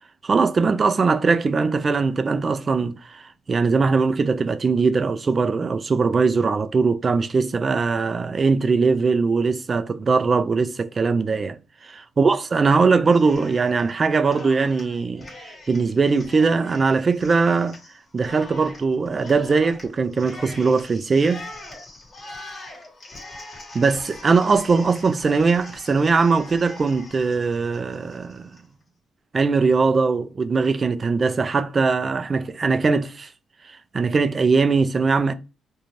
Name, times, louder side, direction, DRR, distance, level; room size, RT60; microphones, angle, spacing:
voice 1, 0.2-11.6 12.2-17.8 18.1-21.4 23.7-28.5 29.3-33.3 33.7-35.3, right 4 dB, 35° right, 0.3 m, -21 dB
Cheering, 13.1-13.9 14.2-28.6, left 2 dB, 35° left, 1.2 m, -42 dB
2.5 x 2.2 x 3.1 m
cardioid pair, 90°, 0 cm